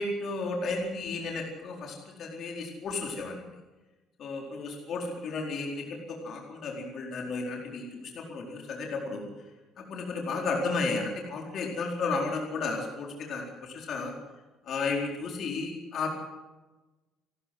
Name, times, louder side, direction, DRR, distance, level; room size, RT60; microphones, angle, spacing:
voice 1, 0.0-3.4 4.2-9.3 9.9-14.1 14.6-16.1, left 3 dB, 45° left, 0 dB, 4.4 m, -33 dB
29.5 x 13.0 x 7.8 m, 1.1 s
cardioid pair, 170°, 0 cm